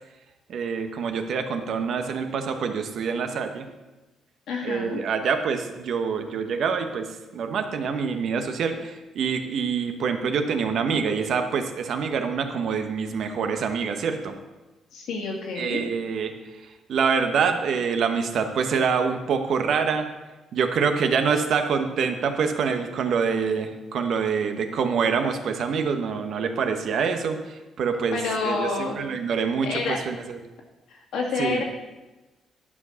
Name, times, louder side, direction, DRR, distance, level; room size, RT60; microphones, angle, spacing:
voice 1, 0.5-3.7 4.6-7.1 7.3-14.3 15.6-16.3 16.9-20.1 20.5-30.4 31.4-31.6, right 6 dB, 60° right, 7 dB, 1.0 m, -26 dB
voice 2, 4.5-5.0 14.9-15.8 28.1-29.0 29.6-30.0 30.9-31.6, left 4 dB, 75° left, 0 dB, 2.0 m, -28 dB
11.0 x 4.9 x 6.8 m, 1.1 s
cardioid pair, 130°, 0 cm